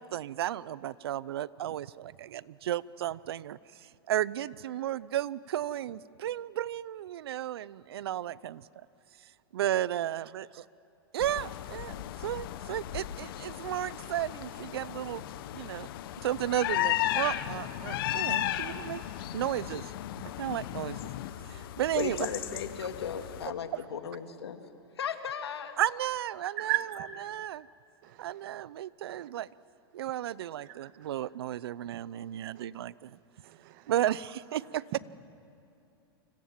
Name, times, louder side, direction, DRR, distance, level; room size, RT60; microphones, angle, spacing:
voice 1, 0.0-8.7 9.5-10.6 11.1-15.2 15.5-15.9 16.2-19.0 19.3-21.1 21.5-22.2 25.8-26.7 27.3-27.7 28.2-29.5 29.9-33.2 33.9-34.8, right 12 dB, 75° right, 20 dB, 0.7 m, -34 dB
sound 1, 11.2-23.5, left 13 dB, 60° left, 1.3 m, -35 dB
voice 2, 22.0-24.6 25.0-25.8, left 7 dB, 85° left, 7 dB, 2.2 m, -36 dB
voice 3, 26.4-27.5 28.0-28.5 29.1-29.3 30.6-31.1 32.5-32.6 33.4-34.2 34.6-35.0, right 17 dB, 55° right, 10 dB, 1.7 m, -38 dB
29.5 x 25.5 x 7.4 m, 2.6 s
hypercardioid pair, 115°, 13 cm